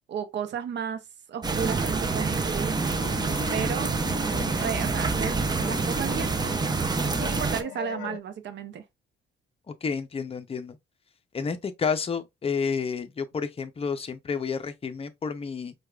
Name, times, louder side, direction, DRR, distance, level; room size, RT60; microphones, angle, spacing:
voice 1, 0.1-2.7 3.5-3.9 4.6-6.4 7.2-8.8, right 8 dB, 65° right, 0.7 m, -33 dB
sound 1, 1.4-7.6, right 4 dB, 20° right, 0.5 m, -27 dB
sound 2, 2.7-8.2, left 12 dB, 80° left, 0.5 m, -40 dB
voice 2, 9.8-10.8 11.3-15.7, left 5 dB, 30° left, 0.6 m, -30 dB
4.5 x 2.3 x 2.3 m
cardioid pair, 90°, 20 cm